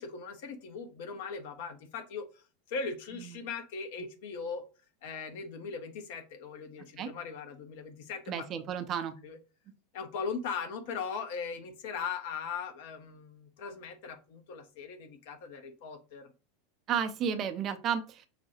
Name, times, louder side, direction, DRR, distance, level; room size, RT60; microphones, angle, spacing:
voice 1, 0.0-4.6 5.0-8.5 9.2-9.4 9.9-16.3, left 5 dB, 60° left, 7 dB, 0.7 m, -39 dB
voice 2, 8.3-9.1 16.9-18.3, right 8 dB, 40° right, 8 dB, 0.5 m, -32 dB
5.7 x 2.2 x 2.9 m, 0.34 s
figure-of-eight pair, 80°, 0 cm